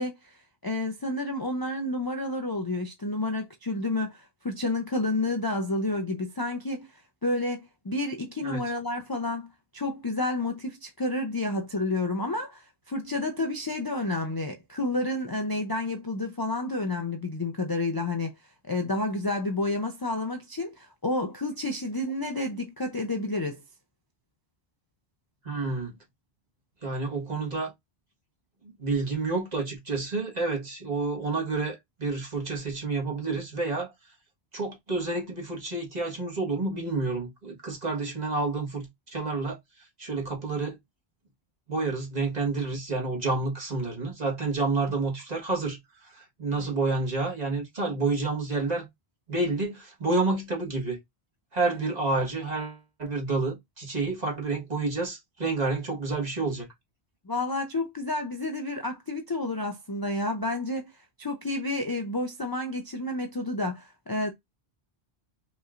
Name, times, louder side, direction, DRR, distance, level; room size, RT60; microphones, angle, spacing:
voice 1, 0.0-6.9 7.2-18.3 18.6-23.6 46.6-46.7 57.3-64.3, left 2 dB, 30° left, 0.4 m, -30 dB
voice 2, 25.4-25.9 26.8-27.7 28.8-33.9 34.5-39.6 40.0-40.8 41.7-48.9 49.3-51.0 51.5-56.7, right 3 dB, 45° right, 1.5 m, -29 dB
5.2 x 3.1 x 2.5 m
omnidirectional pair, 1.0 m